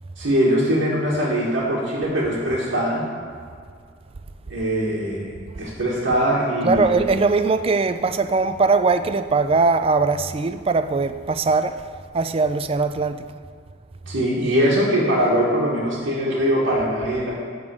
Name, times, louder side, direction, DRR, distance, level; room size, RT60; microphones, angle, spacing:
voice 1, 0.2-3.0 4.5-5.3 5.6-6.9 14.0-17.3, equal, 80° right, 1.7 m, -21 dB
voice 2, 6.6-11.9 12.1-13.3, right 4 dB, 30° right, 0.3 m, -20 dB
11.0 x 3.8 x 7.5 m
head